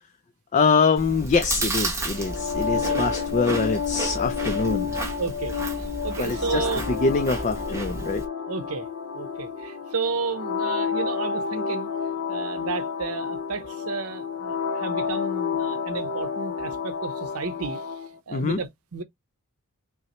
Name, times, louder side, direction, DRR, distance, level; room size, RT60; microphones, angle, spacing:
voice 1, 0.5-5.0 6.2-8.2 18.3-18.6, left 4 dB, 35° left, 0.3 m, -24 dB
Chewing mastication, 1.0-8.3, right 2 dB, 10° right, 0.9 m, -32 dB
sound 1, 2.1-18.1, left 6 dB, 80° left, 0.8 m, -30 dB
voice 2, 5.2-6.8 8.5-8.9 9.1-11.9 12.3-17.8 18.3-19.0, right 4 dB, 80° right, 0.8 m, -32 dB
5.5 x 2.1 x 3.0 m
head